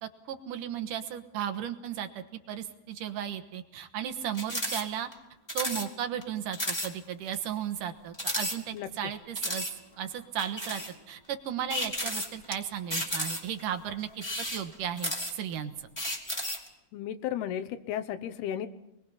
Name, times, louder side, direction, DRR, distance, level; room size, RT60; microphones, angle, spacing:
voice 1, 0.0-5.1 5.5-9.6 10.0-10.8 11.1-14.1 14.5-15.7, right 9 dB, 65° right, 8 dB, 2.5 m, -35 dB
sound 1, 4.3-4.8 5.1-5.2 5.5-5.9 6.2-6.3 6.5-6.9 7.3-7.4 8.1-9.0 9.4-9.7 10.4-10.9 11.7-12.5 12.9-13.6 14.1-15.5 16.0-16.7, left 1 dB, 5° left, 2.5 m, -33 dB
voice 2, 16.9-18.7, left 10 dB, 80° left, 9 dB, 3.0 m, -34 dB
28.5 x 21.5 x 5.7 m, 0.87 s
omnidirectional pair, 4.6 m